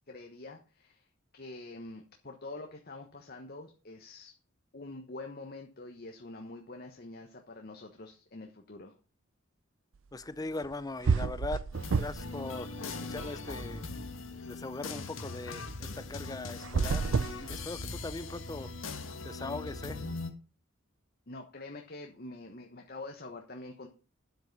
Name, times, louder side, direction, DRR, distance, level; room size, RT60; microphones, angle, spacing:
voice 1, 0.1-1.1 1.3-4.3 4.7-8.9 21.3-23.9, left 2 dB, 45° left, 3 dB, 1.2 m, -46 dB
voice 2, 10.1-11.6 12.0-13.8 14.4-18.7 19.2-20.0, left 2 dB, 20° left, 15 dB, 0.5 m, -40 dB
sound 1, 10.6-10.7 11.0-12.4 12.7-13.8 16.6-18.1, right 5 dB, 70° right, 0.4 m, -30 dB
sound 2, 11.7-20.3, left 3 dB, 75° left, 1.6 m, -40 dB
9.9 x 7.9 x 5.3 m, 0.35 s
head